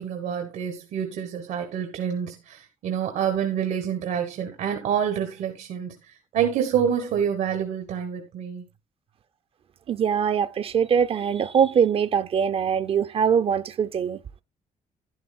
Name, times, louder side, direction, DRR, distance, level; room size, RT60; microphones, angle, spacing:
voice 1, 0.0-8.6, right 8 dB, 90° right, 1.3 m, -27 dB
voice 2, 9.9-14.2, right 7 dB, 45° right, 0.5 m, -22 dB
11.0 x 11.0 x 2.3 m
cardioid pair, 150°, 13 cm